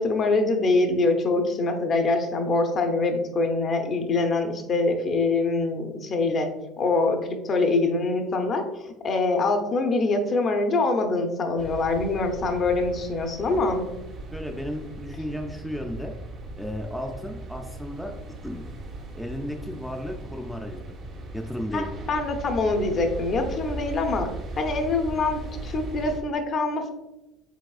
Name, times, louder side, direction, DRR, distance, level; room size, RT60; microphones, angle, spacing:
voice 1, 0.0-6.5 6.8-8.6 9.0-13.8 21.7-24.3 24.6-26.9, left 3 dB, 40° left, 5 dB, 0.7 m, -24 dB
sound 1, 11.6-26.2, right 2 dB, 45° right, 0.8 m, -38 dB
voice 2, 14.3-16.1 16.6-18.1 18.4-18.7 19.1-20.8 21.3-21.9, equal, ahead, 2 dB, 0.4 m, -34 dB
4.8 x 3.4 x 2.4 m, 0.96 s
supercardioid pair, 95°, 0 cm